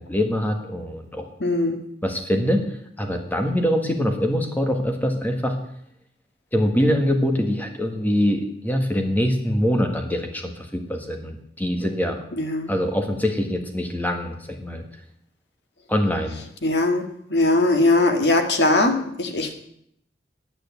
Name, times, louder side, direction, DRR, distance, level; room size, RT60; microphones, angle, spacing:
voice 1, 0.0-1.2 2.0-2.7 3.0-5.6 6.5-12.2 12.7-14.8 15.9-16.4, equal, 10° left, 4 dB, 1.6 m, -23 dB
voice 2, 1.4-1.8 12.3-12.7 16.6-19.5, left 2 dB, 65° left, 5 dB, 1.8 m, -20 dB
9.8 x 9.1 x 8.2 m, 0.72 s
head